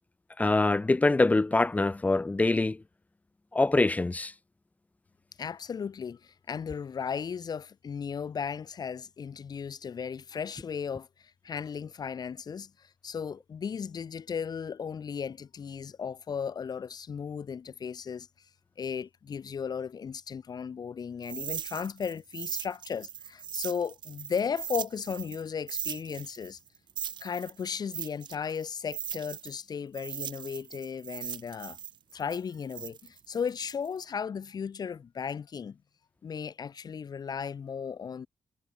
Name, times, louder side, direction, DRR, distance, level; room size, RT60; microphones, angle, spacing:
voice 1, 0.4-2.8 3.5-4.3, left 2 dB, 20° left, 0.5 m, -24 dB
voice 2, 5.4-18.3 18.8-26.6 27.2-31.8 32.1-35.8 36.2-38.3, left 6 dB, 55° left, 0.9 m, -36 dB
sound 1, 21.2-25.4 25.7-29.6 29.9-34.0, right 9 dB, 70° right, 0.5 m, -39 dB
cardioid pair, 85°, 8 cm